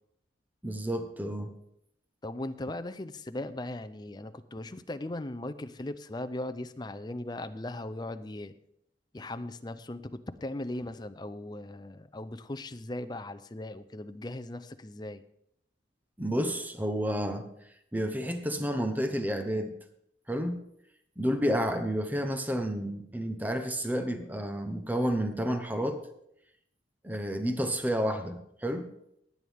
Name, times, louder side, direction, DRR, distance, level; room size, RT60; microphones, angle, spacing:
voice 1, 0.6-1.5 16.2-17.5 17.9-19.7 20.3-20.6 21.2-26.0 27.0-28.9, equal, 10° right, 7 dB, 0.9 m, -30 dB
voice 2, 2.2-8.5 9.1-15.2, left 1 dB, 20° left, 10 dB, 0.5 m, -38 dB
17.0 x 9.4 x 3.5 m, 0.75 s
head